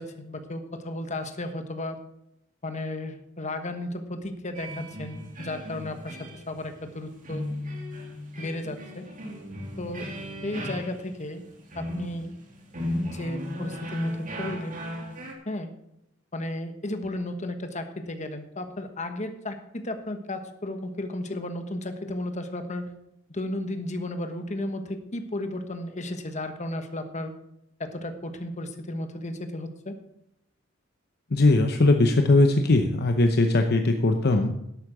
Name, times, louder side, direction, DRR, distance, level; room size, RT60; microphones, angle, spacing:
voice 1, 0.0-2.0 2.6-7.4 8.4-9.0 9.8-10.1 10.4-11.4 11.7-12.3 13.0-14.8 15.5-15.7 16.3-22.9 23.3-27.3 27.8-29.9, left 1 dB, 35° left, 7 dB, 1.3 m, -34 dB
sound 1, 4.5-15.3, left 1 dB, 40° right, 2.3 m, -36 dB
voice 2, 31.3-34.6, left 2 dB, 55° left, 5 dB, 0.8 m, -20 dB
11.5 x 8.4 x 6.1 m, 0.79 s
head